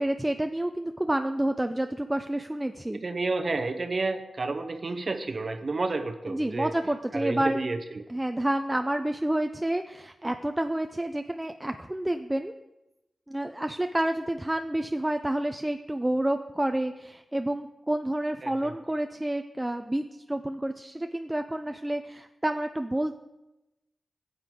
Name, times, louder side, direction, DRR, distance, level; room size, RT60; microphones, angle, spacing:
voice 1, 0.0-3.0 6.3-7.6 8.1-12.5 13.3-23.1, right 1 dB, 15° right, 7 dB, 0.5 m, -29 dB
voice 2, 3.0-6.7 7.1-8.0 18.4-18.7, right 3 dB, 55° right, 7 dB, 0.7 m, -30 dB
11.5 x 7.8 x 3.7 m, 0.98 s
cardioid pair, 50°, 0 cm